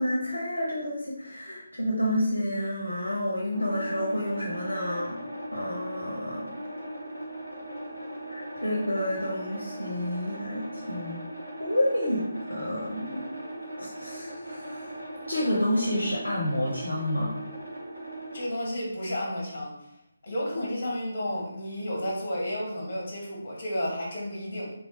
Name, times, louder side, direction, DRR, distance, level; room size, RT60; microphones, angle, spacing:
voice 1, 0.0-6.5 8.3-11.2 11.6-15.0 15.3-17.4, equal, 75° left, -3 dB, 0.9 m, -29 dB
sound 1, 3.5-18.5, right 1 dB, 80° right, 1.2 m, -39 dB
voice 2, 18.3-19.7 20.2-24.7, equal, 40° left, -3 dB, 1.5 m, -32 dB
3.6 x 3.1 x 2.9 m, 0.77 s
figure-of-eight pair, 150°, 0 cm